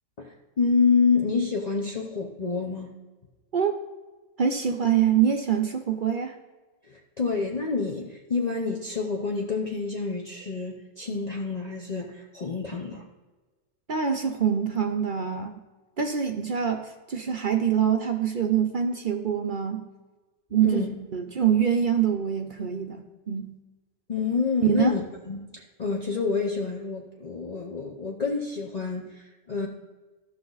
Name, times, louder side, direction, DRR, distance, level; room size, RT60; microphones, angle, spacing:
voice 1, 0.2-2.9 6.9-13.0 20.6-20.9 24.1-25.0 25.3-29.7, left 4 dB, 40° left, -1 dB, 0.9 m, -28 dB
voice 2, 4.4-6.3 13.9-15.6 16.0-19.8 20.5-20.8 21.1-23.5 24.7-25.0, right 8 dB, 50° right, 5 dB, 0.7 m, -25 dB
14.0 x 6.1 x 3.9 m, 1.2 s
omnidirectional pair, 1.2 m